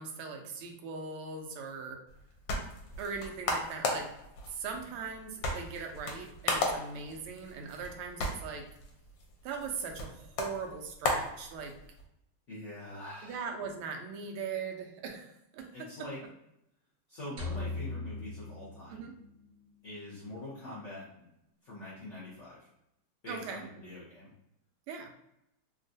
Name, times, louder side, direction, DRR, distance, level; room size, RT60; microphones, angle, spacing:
voice 1, 0.0-2.0 3.0-4.1 4.5-8.6 9.4-11.7 13.2-15.9 18.9-19.1 23.3-23.7 24.9-25.1, right 5 dB, 90° right, 3 dB, 1.5 m, -40 dB
sound 1, 2.1-12.0, left 2 dB, 70° left, 1.2 m, -36 dB
voice 2, 12.5-13.4 15.7-16.2 17.1-19.1 19.8-21.3 21.6-22.7 23.2-24.3, left 1 dB, 55° left, -7 dB, 0.8 m, -44 dB
sound 2, 17.4-19.7, left 3 dB, 65° right, 1.2 m, -39 dB
3.6 x 2.3 x 2.6 m, 0.82 s
omnidirectional pair, 2.3 m